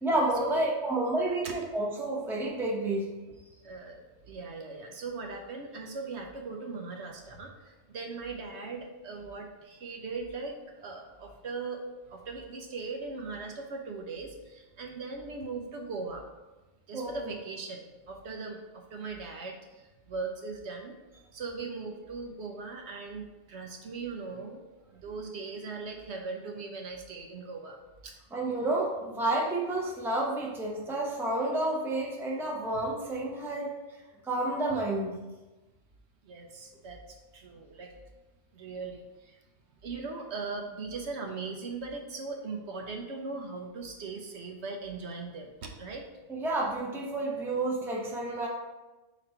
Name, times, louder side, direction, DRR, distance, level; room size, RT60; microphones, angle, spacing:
voice 1, 0.0-3.1 16.9-17.3 28.3-33.7 34.2-35.1 46.3-48.5, right 2 dB, ahead, -2 dB, 0.7 m, -30 dB
voice 2, 3.6-11.8 12.1-16.2 16.9-21.0 21.3-27.8 28.0-28.1 36.2-37.9 38.5-39.4 39.8-46.1, right 4 dB, 65° right, 2 dB, 1.0 m, -39 dB
4.2 x 4.2 x 5.5 m, 1.1 s
omnidirectional pair, 1.3 m